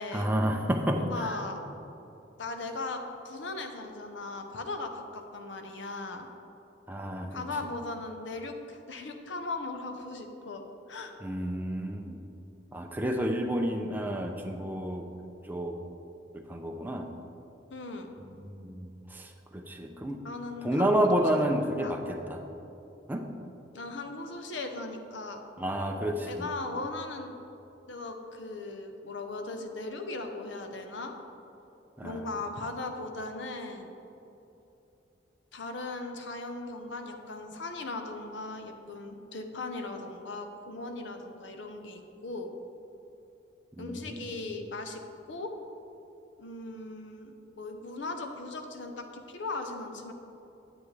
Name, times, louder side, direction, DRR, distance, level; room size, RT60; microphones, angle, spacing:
voice 1, 0.1-1.4 6.9-7.4 11.2-12.2 12.7-15.1 15.5-15.8 16.3-17.1 18.2-20.2 20.6-22.4 23.1-23.3 25.6-26.5 32.0-32.3 43.7-44.2, equal, 10° right, 3 dB, 0.6 m, -30 dB
voice 2, 0.9-1.6 2.4-6.3 7.3-11.1 17.7-18.1 20.2-20.9 21.2-22.0 23.7-25.4 26.3-27.3 27.9-31.1 32.0-33.9 35.5-42.5 43.8-45.0 45.3-45.5 46.4-50.1, left 3 dB, 70° left, 5 dB, 0.8 m, -38 dB
9.7 x 8.1 x 3.3 m, 2.9 s
head